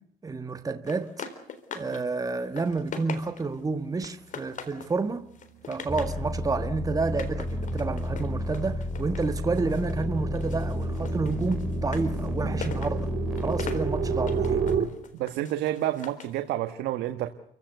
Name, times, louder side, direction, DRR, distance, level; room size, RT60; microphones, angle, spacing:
voice 1, 0.2-1.2 1.7-5.3 5.7-14.6, right 4 dB, 20° right, 1.6 m, -30 dB
sound 1, 0.9-2.0 2.4-3.6 4.0-5.0 5.3-6.2 7.0-10.0 10.4-16.4, left 6 dB, 50° left, 4.0 m, -42 dB
sound 2, 5.2-5.5 5.9-14.8, right 8 dB, 50° right, 3.3 m, -34 dB
sound 3, 5.9-14.8, left 1 dB, 5° right, 3.1 m, -31 dB
voice 2, 15.1-17.3, right 13 dB, 85° right, 1.6 m, -29 dB
29.5 x 16.0 x 8.1 m
cardioid pair, 110°, 17 cm